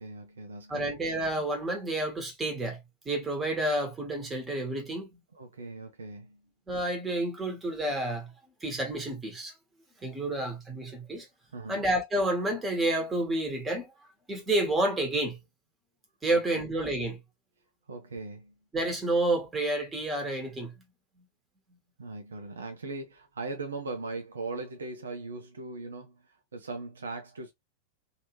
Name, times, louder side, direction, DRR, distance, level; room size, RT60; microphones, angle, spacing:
voice 1, 0.0-0.9 5.3-6.4 11.5-11.8 16.3-16.7 17.9-18.5 22.0-26.2 26.5-27.5, right 3 dB, 70° right, 0.7 m, -39 dB
voice 2, 0.7-2.8 3.0-5.2 6.7-8.3 8.6-9.5 10.0-11.3 11.7-13.9 14.3-15.4 16.2-17.2 18.7-20.7, right 1 dB, 15° right, 1.5 m, -29 dB
3.1 x 2.9 x 3.0 m
figure-of-eight pair, 90°, 0 cm